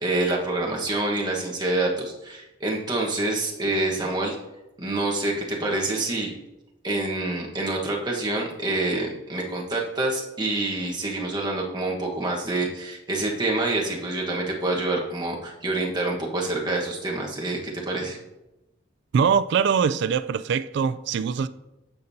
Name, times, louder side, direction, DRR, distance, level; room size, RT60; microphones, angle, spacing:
voice 1, 0.0-4.3 4.8-6.3 6.8-18.2, right 2 dB, 25° right, 1.3 m, -27 dB
voice 2, 19.1-21.5, right 6 dB, 65° right, 0.3 m, -22 dB
14.5 x 5.2 x 2.7 m
head